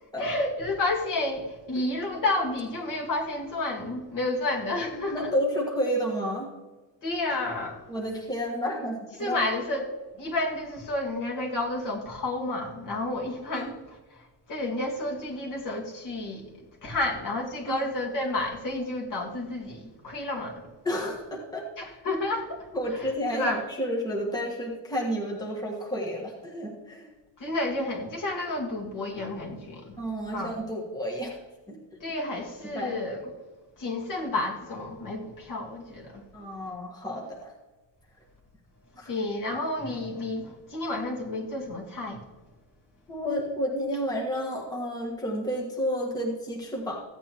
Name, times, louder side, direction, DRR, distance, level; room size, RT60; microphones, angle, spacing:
voice 1, 0.2-5.3 7.0-7.9 9.2-9.9 10.2-20.7 21.8-22.7 23.0-23.6 27.4-30.0 30.3-30.5 32.0-33.2 33.8-36.2 39.1-42.3, left 2 dB, 45° left, 2.2 m, -31 dB
voice 2, 5.1-6.5 7.9-9.4 13.5-13.7 17.7-17.8 20.8-21.6 22.7-27.1 30.0-31.4 31.7-31.8 32.7-33.0 36.3-37.5 38.9-39.1 43.1-47.0, equal, 10° left, 1.5 m, -30 dB
15.5 x 9.0 x 3.0 m
cardioid pair, 155°, 45 cm